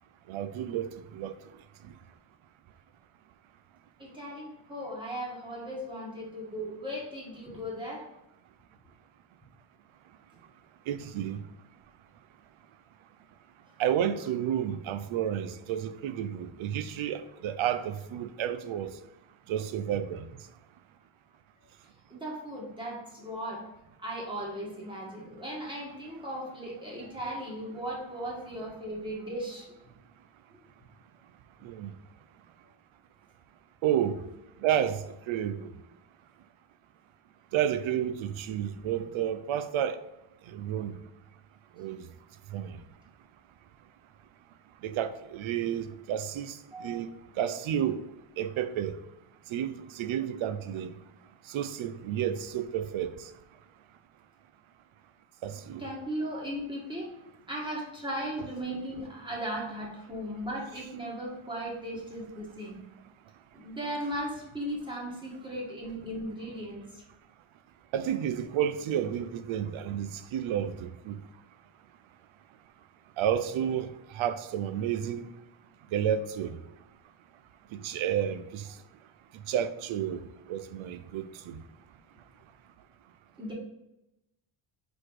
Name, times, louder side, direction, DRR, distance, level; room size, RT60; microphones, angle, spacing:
voice 1, 0.3-0.9 1.1-1.3 10.9-11.4 13.8-18.9 19.5-20.2 31.6-31.9 33.8-34.2 34.6-35.0 35.3-35.7 37.5-40.0 40.5-41.0 41.8-42.0 42.5-42.7 44.8-46.5 46.8-47.1 47.4-48.0 48.4-49.0 49.5-50.9 51.5-53.1 55.4-55.8 67.9-71.2 73.2-73.9 74.1-75.3 75.9-76.5 77.8-78.6 79.5-80.2 80.5-81.6, right 10 dB, 75° right, 0.7 m, -31 dB
voice 2, 4.0-8.1 22.1-23.6 24.0-29.7 46.7-47.0 55.5-57.1 57.5-62.8 63.5-67.0 83.4-83.5, equal, 10° right, 1.6 m, -37 dB
4.9 x 4.1 x 4.7 m
cardioid pair, 160°, 48 cm